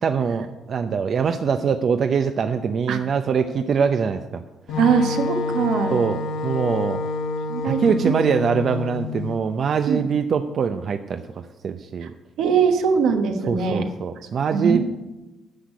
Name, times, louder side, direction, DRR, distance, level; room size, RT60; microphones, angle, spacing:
voice 1, 0.0-4.4 4.7-4.8 5.9-7.0 7.6-12.1 13.5-14.8, right 6 dB, 55° right, 7 dB, 0.6 m, -23 dB
Wind instrument woodwind instrument, 4.7-9.4, left 4 dB, 85° left, 1.2 m, -28 dB
voice 2, 4.8-5.9 7.5-8.1 9.9-10.0 12.0-12.1 12.4-13.9 14.5-14.8, right 6 dB, 85° right, 5 dB, 1.3 m, -21 dB
9.9 x 6.4 x 8.3 m, 1.1 s
cardioid pair, 90°, 0 cm